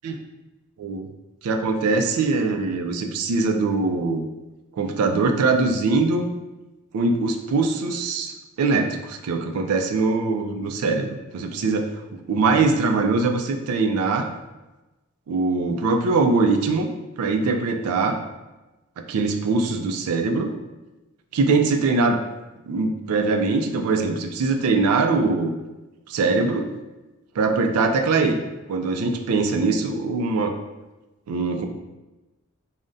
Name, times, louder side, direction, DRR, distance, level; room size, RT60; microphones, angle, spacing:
voice 1, 0.8-1.1 1.4-4.3 4.7-6.2 6.9-11.9 12.3-14.3 15.3-16.9 17.2-18.2 19.1-20.5 21.3-22.2 22.7-25.5 26.1-26.7 27.4-28.4 28.7-30.5 31.3-31.6, right 3 dB, 75° right, 4 dB, 0.4 m, -22 dB
3.5 x 2.1 x 2.6 m, 1.1 s
head